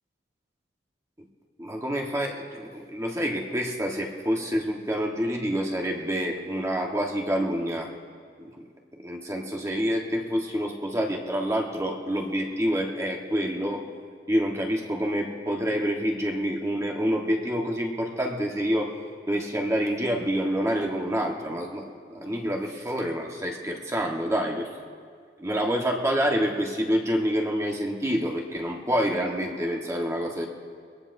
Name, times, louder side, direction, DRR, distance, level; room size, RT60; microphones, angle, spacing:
voice 1, 1.6-7.9 8.4-8.7 9.0-13.8 14.3-18.9 19.3-24.7 25.4-30.5, equal, 15° right, 0 dB, 1.3 m, -27 dB
23.5 x 18.0 x 2.7 m, 2.1 s
head